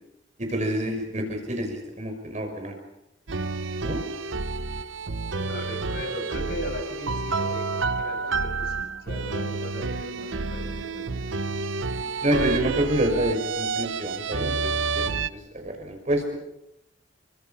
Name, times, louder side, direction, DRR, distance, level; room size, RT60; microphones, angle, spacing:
voice 1, 0.4-2.7 3.8-4.0 12.0-16.2, right 1 dB, 40° right, 4 dB, 5.7 m, -28 dB
sound 1, 3.3-15.3, right 4 dB, 75° right, 0.9 m, -29 dB
voice 2, 5.4-11.1, equal, 55° left, 4 dB, 7.0 m, -37 dB
29.0 x 25.0 x 5.7 m, 0.86 s
head